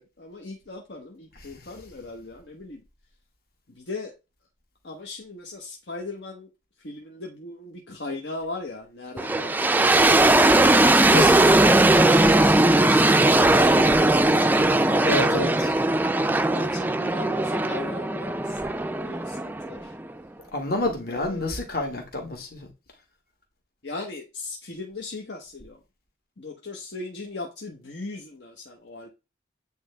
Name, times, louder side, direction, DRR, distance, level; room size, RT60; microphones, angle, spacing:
voice 1, 0.0-2.8 3.8-4.1 4.8-6.5 6.8-10.3 12.1-15.5 16.4-19.9 21.1-21.5 23.8-25.8 26.4-29.1, left 3 dB, 75° left, 1.1 m, -38 dB
sound 1, 9.2-20.1, right 2 dB, 10° right, 0.3 m, -19 dB
voice 2, 11.1-11.4 12.2-12.6 15.0-15.7 20.5-22.7, left 2 dB, 55° left, 1.8 m, -28 dB
8.6 x 3.3 x 3.4 m
head